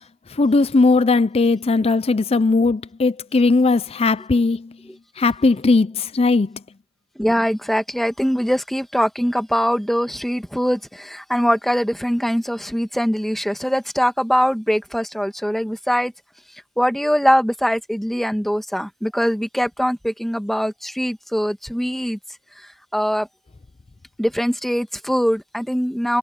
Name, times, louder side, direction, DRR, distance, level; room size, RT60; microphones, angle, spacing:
voice 1, 0.4-4.6 5.2-5.9 6.1-6.5, left 3 dB, 25° left, 0.4 m, -18 dB
voice 2, 7.2-16.1 16.8-22.2 22.9-23.3 24.2-26.2, equal, ahead, 1.5 m, -22 dB
head